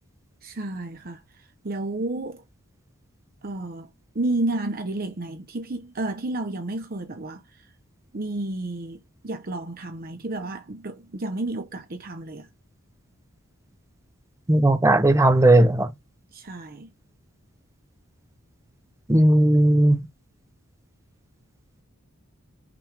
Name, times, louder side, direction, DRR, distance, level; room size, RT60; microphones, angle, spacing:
voice 1, 0.4-1.2 1.6-2.4 3.4-3.9 4.1-7.4 8.1-12.5 16.3-16.9, right 2 dB, 45° right, 0.8 m, -31 dB
voice 2, 14.5-15.9 19.1-20.0, right 1 dB, 15° right, 0.7 m, -17 dB
6.0 x 3.4 x 4.9 m
head